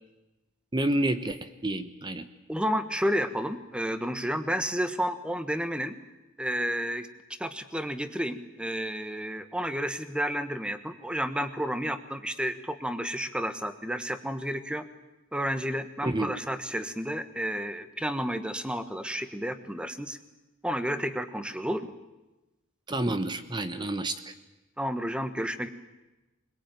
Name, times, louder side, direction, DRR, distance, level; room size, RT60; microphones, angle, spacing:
voice 1, 0.7-2.3 16.0-16.3 22.9-24.3, right 1 dB, 25° right, 10 dB, 1.1 m, -29 dB
voice 2, 2.5-5.9 6.4-7.1 7.4-14.8 15.3-20.2 20.6-21.9 24.8-25.7, equal, 5° right, 10 dB, 1.3 m, -31 dB
22.0 x 21.0 x 9.2 m, 1.0 s
head